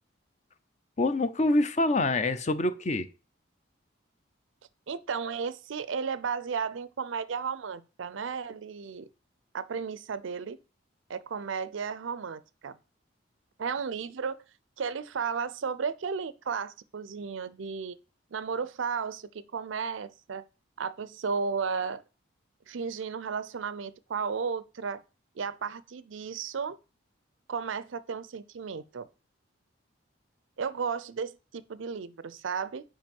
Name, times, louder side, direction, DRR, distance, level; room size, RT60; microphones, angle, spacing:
voice 1, 1.0-3.1, left 2 dB, 35° left, 0.5 m, -26 dB
voice 2, 4.9-9.1 9.5-10.6 11.1-12.7 13.6-14.4 14.8-18.0 18.3-20.4 20.8-22.0 22.7-25.0 25.4-26.8 27.5-29.1 30.6-32.8, right 5 dB, 75° right, 0.5 m, -34 dB
5.2 x 4.9 x 5.3 m
head